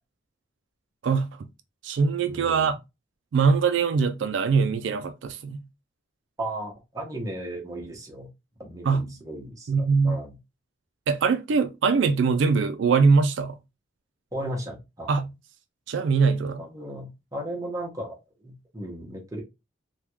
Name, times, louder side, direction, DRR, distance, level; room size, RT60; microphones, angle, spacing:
voice 1, 1.0-1.5 1.8-2.8 3.3-5.7 8.9-9.1 9.7-10.2 11.1-13.5 15.1-15.3 15.9-16.6, right 5 dB, 75° right, 0.3 m, -22 dB
voice 2, 2.3-2.7 6.4-8.3 8.6-10.4 14.3-15.1 16.6-19.4, right 1 dB, 15° right, 0.9 m, -36 dB
3.5 x 2.3 x 3.0 m
head